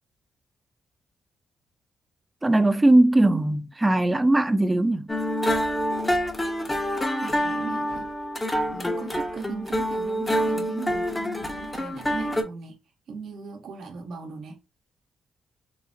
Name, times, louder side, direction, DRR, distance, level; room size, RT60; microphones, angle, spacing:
voice 1, 2.4-5.1, right 1 dB, 20° right, 0.4 m, -19 dB
sound 1, 5.1-12.4, equal, 20° left, 0.7 m, -27 dB
voice 2, 7.1-8.1 8.7-12.8 13.1-14.6, right 4 dB, 70° right, 1.0 m, -38 dB
3.9 x 2.0 x 2.6 m
supercardioid pair, 60°, 0 cm